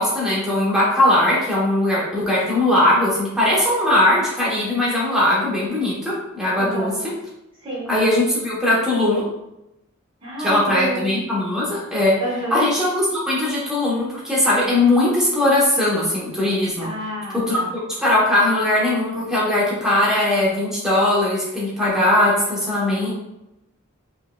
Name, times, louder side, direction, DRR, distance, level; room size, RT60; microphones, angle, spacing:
voice 1, 0.0-7.1 7.9-9.2 10.4-12.1 12.5-16.9 17.5-17.6 18.0-23.1, left 1 dB, 5° right, -7 dB, 1.0 m, -19 dB
voice 2, 6.6-7.0 7.6-7.9 10.2-11.2 12.2-12.6 16.8-17.7, right 1 dB, 25° right, -6 dB, 1.0 m, -29 dB
4.4 x 3.1 x 2.3 m, 0.89 s
head